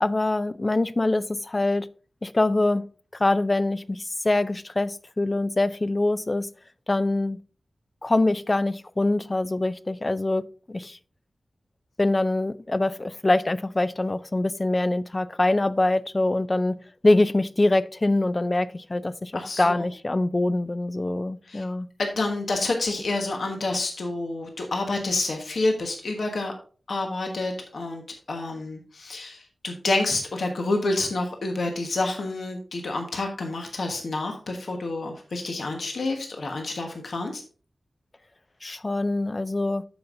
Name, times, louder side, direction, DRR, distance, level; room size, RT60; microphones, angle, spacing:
voice 1, 0.0-1.9 2.2-2.9 3.2-6.5 6.9-7.4 8.0-11.0 12.0-16.8 17.0-21.9 38.6-39.9, left 2 dB, 25° left, 0.4 m, -24 dB
voice 2, 19.3-19.8 21.5-21.6 22.0-26.5 26.9-28.0 28.3-37.4, left 2 dB, 65° left, 1.3 m, -28 dB
13.5 x 5.3 x 2.6 m
wide cardioid pair, 115°, 0 cm